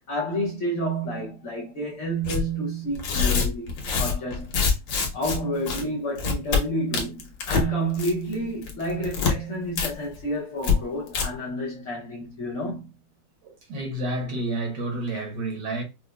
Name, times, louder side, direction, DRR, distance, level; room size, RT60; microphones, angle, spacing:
voice 1, 0.1-4.6 5.1-12.9, right 1 dB, 55° left, 1.0 m, -30 dB
Tearing, 2.2-2.4 2.9-5.4 5.7-5.8 6.2-6.6 6.9-7.7 7.9-8.3 8.6-9.3 9.8-9.9 10.2-10.3 10.6-10.7 11.1-11.2, left 5 dB, 85° left, 1.6 m, -24 dB
voice 2, 13.4-15.8, right 2 dB, 70° right, 1.6 m, -30 dB
5.0 x 2.1 x 2.2 m
omnidirectional pair, 2.0 m